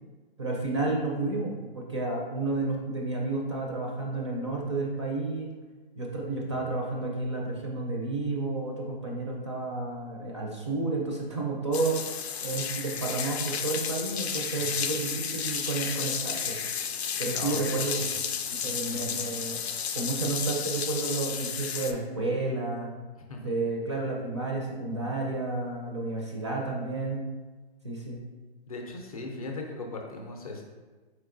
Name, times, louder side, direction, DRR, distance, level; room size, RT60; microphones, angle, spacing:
voice 1, 0.4-5.5 6.0-12.0 12.4-16.6 17.2-18.0 18.6-19.6 19.9-22.9 23.4-27.3 27.8-28.2, right 3 dB, 30° right, -1 dB, 0.4 m, -31 dB
sound 1, 11.7-21.9, left 7 dB, 90° left, 0.5 m, -32 dB
voice 2, 17.3-18.1 18.6-19.2 23.2-23.7 28.7-30.6, left 2 dB, 35° left, 1 dB, 0.5 m, -39 dB
4.4 x 3.8 x 2.5 m, 1.3 s
hypercardioid pair, 160°, 31 cm